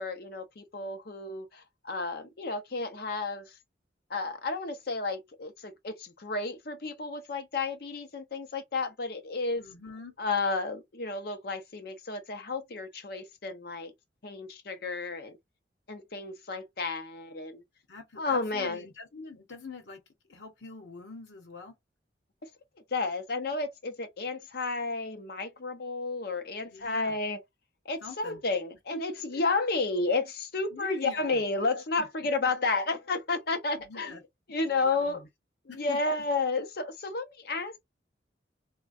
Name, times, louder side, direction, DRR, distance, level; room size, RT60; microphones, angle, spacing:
voice 1, 0.0-3.5 4.1-9.6 10.2-13.9 14.2-15.4 15.9-17.6 18.2-18.8 22.4-22.5 22.9-27.4 27.9-34.1 34.5-35.2 35.7-37.8, left 3 dB, 60° left, 0.7 m, -32 dB
voice 2, 9.6-10.2 17.9-20.0 20.3-21.8 26.6-27.2 28.0-28.4 28.9-29.4 30.7-31.4 32.0-32.5 33.8-34.2 34.5-35.3 35.7-36.2, left 3 dB, 85° left, 1.0 m, -45 dB
3.2 x 2.2 x 2.5 m
head